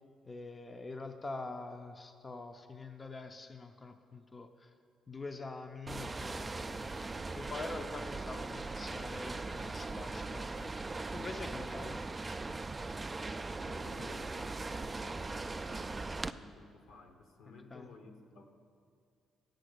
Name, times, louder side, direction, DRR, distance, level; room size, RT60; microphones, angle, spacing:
voice 1, 0.2-4.7 5.1-6.8 7.3-10.7 11.1-12.0 17.7-17.9, left 3 dB, 25° left, 6 dB, 0.5 m, -45 dB
sound 1, 5.9-16.3, right 3 dB, 25° right, 0.3 m, -40 dB
voice 2, 13.0-18.5, left 3 dB, 80° left, 5 dB, 1.1 m, -55 dB
8.3 x 7.7 x 6.7 m, 2.2 s
cardioid pair, 90°, 0 cm